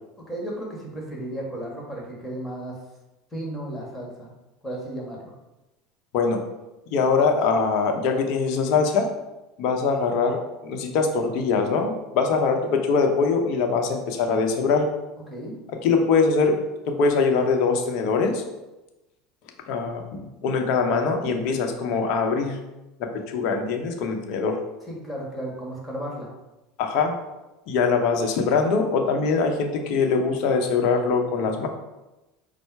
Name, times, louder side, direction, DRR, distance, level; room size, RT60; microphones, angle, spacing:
voice 1, 0.2-2.8 3.3-4.3 4.6-5.3 15.3-15.6 24.9-26.3, right 1 dB, 10° left, -3 dB, 1.4 m, -34 dB
voice 2, 6.9-9.1 9.6-14.9 15.8-16.6 16.9-18.4 19.7-22.6 23.0-24.6 26.8-27.2 27.7-31.7, left 4 dB, 65° left, 3 dB, 0.8 m, -22 dB
5.5 x 2.1 x 4.6 m, 1.0 s
supercardioid pair, 105°, 0 cm